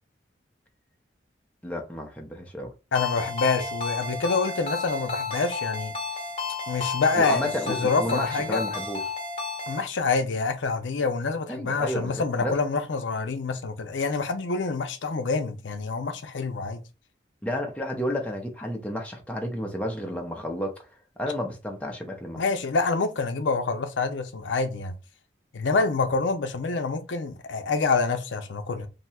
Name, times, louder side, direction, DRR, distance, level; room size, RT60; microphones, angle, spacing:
voice 1, 1.6-2.7 7.2-9.0 11.5-12.6 17.4-20.9 21.2-22.4, left 1 dB, 5° left, 0.6 m, -31 dB
voice 2, 2.9-5.9 6.7-8.6 9.7-16.8 22.4-24.9 25.5-28.9, left 4 dB, 85° left, 0.6 m, -26 dB
Ringtone, 2.9-9.8, left 4 dB, 30° left, 0.8 m, -32 dB
2.7 x 2.2 x 4.1 m
head